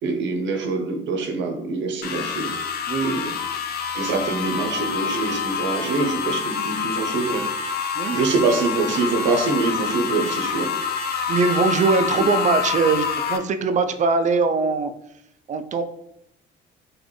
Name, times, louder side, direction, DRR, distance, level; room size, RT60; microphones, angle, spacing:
voice 1, 0.0-2.5 3.0-3.3 3.9-7.5 8.1-10.7 12.2-12.3, right 3 dB, 70° right, 4 dB, 0.8 m, -24 dB
sound 1, 2.0-13.4, left 6 dB, 50° left, 0.5 m, -27 dB
voice 2, 2.9-3.2 8.0-8.2 11.3-14.9 15.5-15.8, right 4 dB, 35° right, 9 dB, 0.4 m, -21 dB
4.0 x 2.5 x 3.1 m, 0.78 s
supercardioid pair, 85°, 20 cm